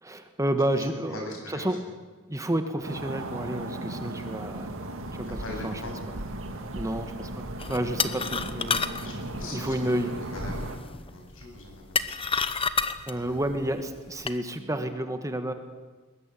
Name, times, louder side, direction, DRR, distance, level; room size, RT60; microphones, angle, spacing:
voice 1, 0.0-1.9 2.3-4.8 5.1-5.3 5.6-5.7 6.1-6.2 6.7-9.1 9.5-10.1 13.1-15.5, right 1 dB, 15° right, 7 dB, 1.4 m, -30 dB
voice 2, 0.7-1.7 5.3-5.9 9.0-9.9 10.2-12.1 13.1-13.4 14.6-14.9, left 1 dB, 65° left, 2 dB, 7.8 m, -42 dB
sound 1, 2.8-10.8, right 2 dB, 65° right, 2.3 m, -37 dB
sound 2, 7.6-14.4, left 5 dB, 25° left, 1.0 m, -31 dB
21.5 x 21.0 x 8.4 m, 1.3 s
head